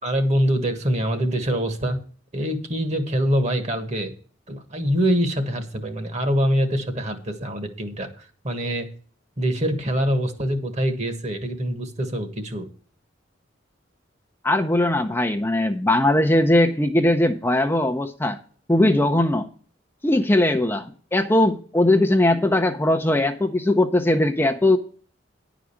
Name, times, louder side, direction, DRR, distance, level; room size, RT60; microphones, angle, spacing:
voice 1, 0.0-2.0 2.3-4.1 4.5-8.9 9.4-12.7, equal, 35° right, 7 dB, 1.5 m, -24 dB
voice 2, 14.4-18.4 18.7-19.5 20.0-24.8, left 1 dB, 10° left, 5 dB, 0.6 m, -20 dB
10.5 x 5.0 x 7.1 m, 0.43 s
head